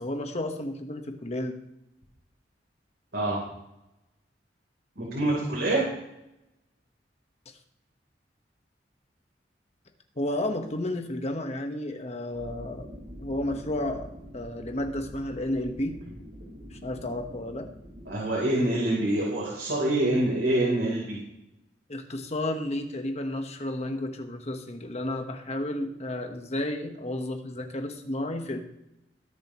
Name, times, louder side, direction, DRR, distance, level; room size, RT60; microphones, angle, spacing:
voice 1, 0.0-1.5 10.2-12.9 13.2-16.0 16.7-17.7 21.9-28.6, left 1 dB, 40° left, 5 dB, 1.3 m, -32 dB
voice 2, 5.0-5.8 18.1-21.2, right 1 dB, 85° right, -5 dB, 3.6 m, -26 dB
sound 1, 12.3-18.2, equal, 60° right, 3.3 m, -45 dB
21.5 x 7.2 x 3.1 m, 0.87 s
head